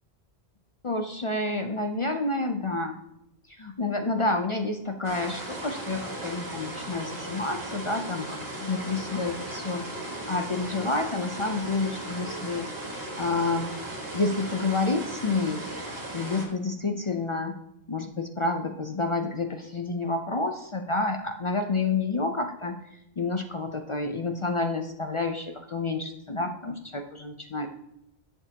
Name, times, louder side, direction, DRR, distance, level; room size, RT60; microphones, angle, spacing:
voice 1, 0.8-3.0 3.5-9.9 10.3-12.7 13.2-13.7 14.1-15.6 16.1-17.6 17.9-22.8 23.2-27.7, left 3 dB, 40° left, 5 dB, 0.5 m, -29 dB
sound 1, 5.0-16.4, right 1 dB, 65° right, 2.1 m, -37 dB
11.0 x 6.7 x 2.9 m, 0.81 s
omnidirectional pair, 1.1 m